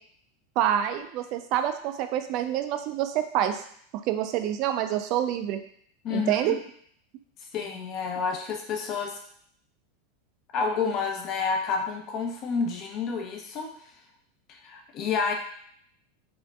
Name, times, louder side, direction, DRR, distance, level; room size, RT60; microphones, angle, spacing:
voice 1, 0.6-3.6 4.1-5.6 6.1-6.6, right 11 dB, 50° right, 7 dB, 0.4 m, -27 dB
voice 2, 6.0-6.6 7.5-9.2 10.5-13.9 14.5-15.3, left 5 dB, 45° left, 2 dB, 0.7 m, -29 dB
5.1 x 2.5 x 2.4 m, 0.62 s
supercardioid pair, 120°, 0 cm